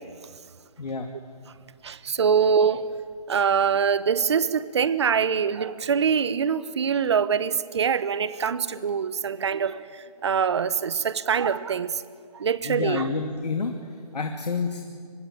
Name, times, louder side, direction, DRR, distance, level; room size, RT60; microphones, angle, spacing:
voice 1, 0.8-1.1 12.6-14.8, left 4 dB, 85° left, 4 dB, 2.5 m, -29 dB
voice 2, 1.8-3.0 3.3-9.8 10.2-11.9 12.3-13.0, right 6 dB, 45° right, 16 dB, 0.9 m, -24 dB
24.5 x 21.0 x 8.6 m, 2.1 s
hypercardioid pair, 170°, 20 cm